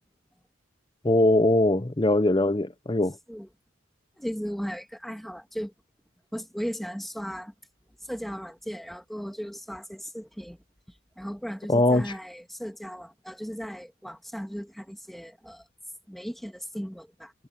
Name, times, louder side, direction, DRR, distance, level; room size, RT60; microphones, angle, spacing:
voice 1, 1.0-3.1 11.7-12.1, left 1 dB, 20° left, 0.7 m, -21 dB
voice 2, 4.2-5.7 6.3-7.5 8.1-10.6 11.2-15.6 16.1-17.3, equal, ahead, 1.7 m, -36 dB
head